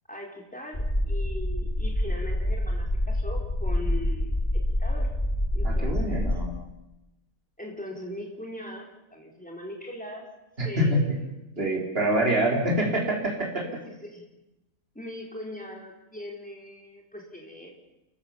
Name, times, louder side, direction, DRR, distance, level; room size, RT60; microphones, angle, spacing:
voice 1, 0.1-5.1 5.5-6.4 7.6-10.3 10.6-11.3 13.6-14.2 14.9-17.8, equal, 5° left, 0 dB, 4.4 m, -40 dB
sound 1, 0.7-6.4, left 1 dB, 25° left, 3.7 m, -27 dB
voice 2, 5.6-6.6 10.6-11.0 11.6-13.6, right 1 dB, 40° right, -1 dB, 4.3 m, -25 dB
29.0 x 15.0 x 7.2 m, 0.94 s
omnidirectional pair, 1.5 m